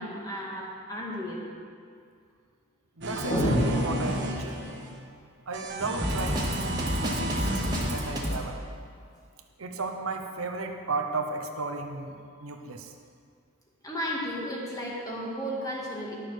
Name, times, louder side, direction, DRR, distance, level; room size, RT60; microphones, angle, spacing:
voice 1, 0.0-1.4 13.8-16.1, equal, 20° left, -4 dB, 2.0 m, -34 dB
sound 1, 3.0-5.0 5.5-8.3, right 1 dB, 55° right, 1.4 m, -32 dB
voice 2, 3.0-4.6 5.5-8.6 9.6-12.9, right 3 dB, 85° right, 4 dB, 0.9 m, -34 dB
sound 2, 3.3-4.9, equal, 45° left, 2.2 m, -27 dB
Drum kit, 6.0-8.4, equal, 20° right, 2.0 m, -30 dB
12.0 x 6.7 x 6.4 m, 2.2 s
head